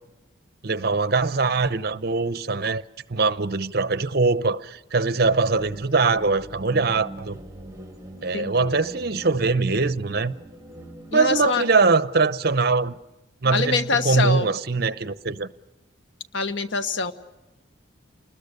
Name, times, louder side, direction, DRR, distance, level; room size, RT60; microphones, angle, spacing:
voice 1, 0.6-2.8 3.1-7.4 8.2-10.3 11.1-12.9 13.4-15.5, right 4 dB, 50° right, 0.8 m, -22 dB
sound 1, 5.2-11.5, right 1 dB, 15° right, 2.9 m, -42 dB
voice 2, 8.3-8.8 11.1-11.6 13.4-14.5 16.3-17.1, left 3 dB, 65° left, 1.2 m, -25 dB
30.0 x 20.5 x 6.6 m
head